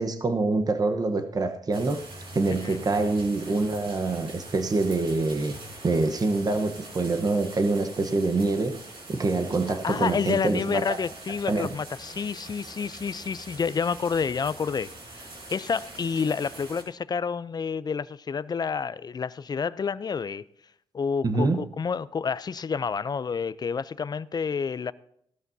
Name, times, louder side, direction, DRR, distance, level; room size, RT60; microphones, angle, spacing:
voice 1, 0.0-2.0 2.3-5.5 5.8-8.8 9.1-11.0 11.5-11.7 21.2-21.6, right 3 dB, 40° right, 1.0 m, -25 dB
sound 1, 1.7-16.8, right 2 dB, 65° right, 5.2 m, -44 dB
voice 2, 9.7-14.9 15.2-20.4 20.9-24.9, left 6 dB, 40° left, 0.5 m, -29 dB
17.0 x 13.0 x 2.8 m
cardioid pair, 75°, 10 cm